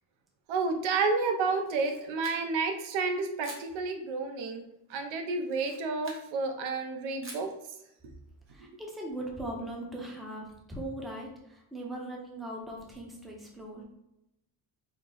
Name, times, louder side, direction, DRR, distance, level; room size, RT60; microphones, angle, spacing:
voice 1, 0.5-4.6 4.9-7.5, right 4 dB, 70° right, 5 dB, 0.8 m, -30 dB
Camera, 1.5-2.7 3.4-3.7 5.4-6.3 7.2-7.6, right 2 dB, 25° right, 0.9 m, -47 dB
voice 2, 8.5-13.8, right 1 dB, ahead, -1 dB, 0.6 m, -39 dB
4.4 x 2.1 x 3.8 m, 0.84 s
cardioid pair, 125°, 47 cm